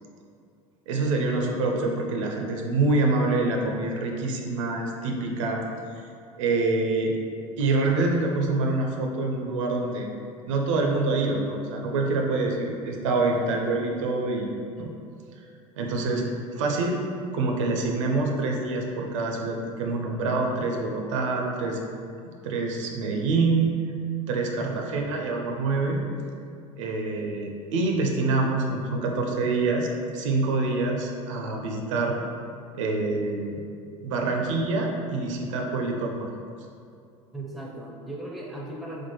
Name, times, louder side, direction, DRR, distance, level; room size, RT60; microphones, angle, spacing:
voice 1, 0.9-5.6 6.0-6.1 6.4-7.2 7.6-10.1 10.5-14.9 15.8-16.3 16.5-17.0 17.3-21.8 22.2-23.7 24.3-26.0 26.8-29.9 30.1-32.2 32.7-33.6 34.0-36.3, right 3 dB, 65° right, 1 dB, 0.4 m, -26 dB
voice 2, 13.3-13.7 24.6-25.0 37.3-39.1, right 2 dB, ahead, -2 dB, 0.5 m, -38 dB
4.3 x 2.1 x 3.0 m, 2.5 s
figure-of-eight pair, 70°, 18 cm